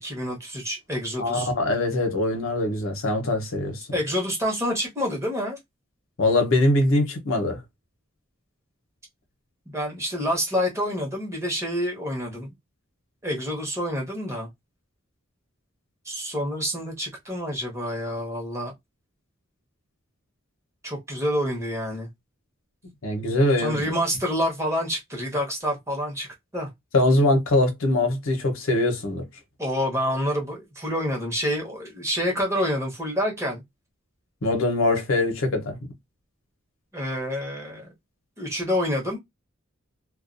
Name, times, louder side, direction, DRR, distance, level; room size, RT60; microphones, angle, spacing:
voice 1, 0.0-1.5 3.9-5.6 9.7-12.5 13.2-14.5 16.0-18.7 20.8-22.1 23.6-26.3 26.5-26.7 29.6-33.6 36.9-37.9 38.4-39.2, equal, 15° right, 0.9 m, -27 dB
voice 2, 1.2-3.9 6.2-7.6 23.0-23.9 26.9-29.2 34.4-35.8, left 2 dB, 70° left, 0.8 m, -22 dB
2.3 x 2.2 x 2.5 m
head